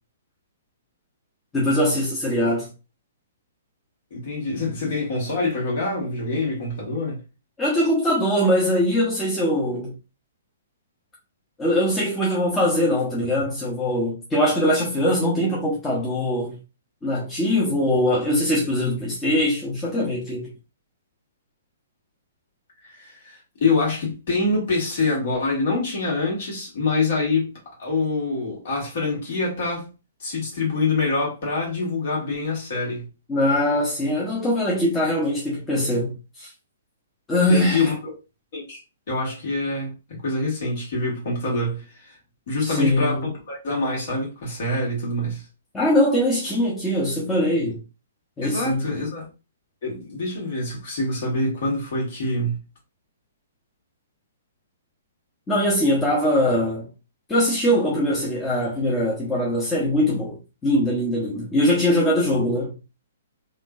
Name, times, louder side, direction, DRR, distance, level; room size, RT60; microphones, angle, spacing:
voice 1, 1.5-2.7 7.6-9.9 11.6-16.5 17.0-20.5 33.3-36.5 37.3-37.8 42.6-43.2 45.7-47.8 48.4-48.8 55.5-56.9 57.3-60.4 60.6-62.7, left 1 dB, 15° left, 0.9 m, -22 dB
voice 2, 4.1-7.2 22.8-29.9 30.2-33.1 37.5-38.0 38.5-38.8 39.1-42.2 42.5-45.4 48.4-49.3 49.8-52.6, left 3 dB, 50° left, 1.8 m, -25 dB
3.5 x 2.5 x 2.4 m
figure-of-eight pair, 115°, 0 cm